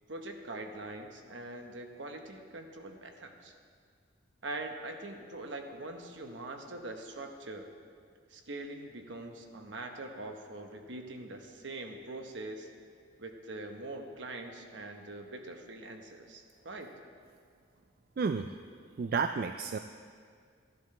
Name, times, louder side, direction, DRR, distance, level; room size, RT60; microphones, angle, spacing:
voice 1, 0.1-3.5 4.4-7.7 8.3-12.7 13.2-16.9, right 2 dB, 70° right, 4 dB, 1.1 m, -43 dB
voice 2, 18.2-18.5 19.0-19.8, right 5 dB, 50° right, 8 dB, 0.3 m, -31 dB
15.0 x 11.0 x 3.3 m, 2.1 s
head